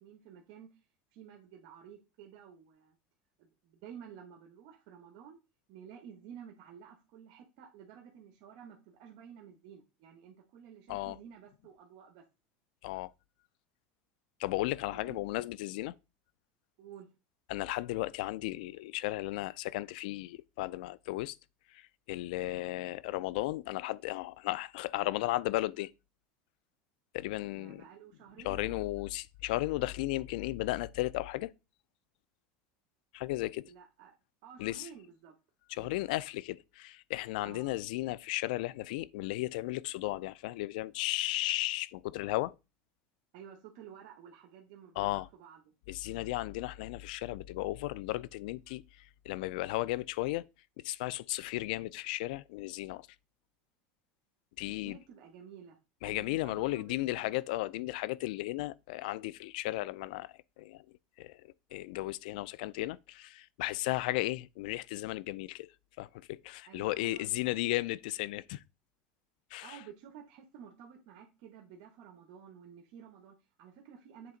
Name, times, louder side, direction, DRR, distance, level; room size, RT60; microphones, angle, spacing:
voice 1, 0.0-0.8 1.1-3.0 3.4-5.4 5.7-12.2 14.9-15.2 16.8-17.1 27.5-28.8 33.6-34.1 34.4-35.4 35.7-36.0 37.4-37.7 43.3-45.7 46.1-46.3 54.8-55.8 56.0-57.3 66.7-67.6 69.6-74.4, right 8 dB, 65° right, 1.1 m, -52 dB
voice 2, 14.4-15.9 17.5-21.4 21.7-25.9 27.1-27.8 28.4-31.5 33.1-33.7 34.6-34.9 35.7-42.5 45.0-45.3 45.9-50.5 50.8-53.1 54.6-55.0 56.0-60.8 61.2-65.7 66.0-68.6 69.5-69.8, left 18 dB, 80° left, 0.3 m, -35 dB
7.7 x 3.3 x 3.8 m
supercardioid pair, 135°, 5 cm